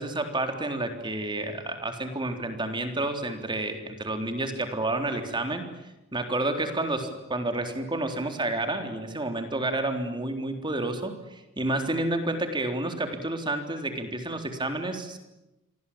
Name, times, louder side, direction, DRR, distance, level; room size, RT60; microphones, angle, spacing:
voice 1, 0.0-5.6 6.1-15.2, right 2 dB, 25° right, 6 dB, 3.6 m, -30 dB
29.0 x 24.0 x 8.7 m, 0.96 s
head